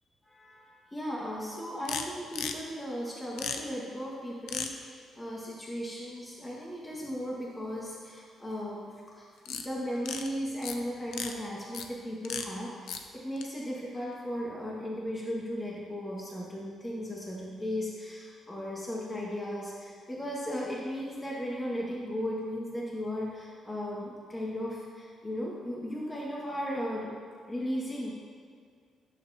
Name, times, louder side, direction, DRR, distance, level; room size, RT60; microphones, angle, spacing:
voice 1, 0.2-27.1 27.5-28.1, equal, 15° left, -4 dB, 2.0 m, -36 dB
sound 1, 1.8-2.0 2.3-2.5 3.4-3.6 4.5-4.7 9.5-9.7 10.0-10.3 10.6-10.8 11.1-11.3 11.7-11.9 12.2-12.4 12.9-13.0 13.4-13.5, left 7 dB, 80° left, 0.7 m, -35 dB
16.5 x 7.1 x 3.0 m, 2.1 s
cardioid pair, 90°, 0 cm